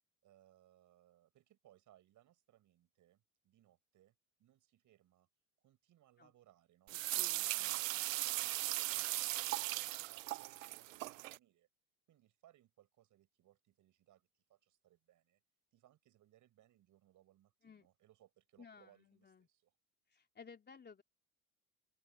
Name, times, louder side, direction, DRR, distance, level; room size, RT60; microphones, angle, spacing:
voice 1, 0.2-4.1 4.4-5.3 5.6-11.7 12.1-15.4 15.7-19.7, right 13 dB, 50° right, 7.1 m, -69 dB
voice 2, 6.9-7.5 17.6-17.9 18.6-19.5 20.1-21.0, left 5 dB, 25° left, 3.3 m, -58 dB
sound 1, 6.9-11.4, right 18 dB, 85° right, 0.5 m, -38 dB
open air
hypercardioid pair, 75°, 38 cm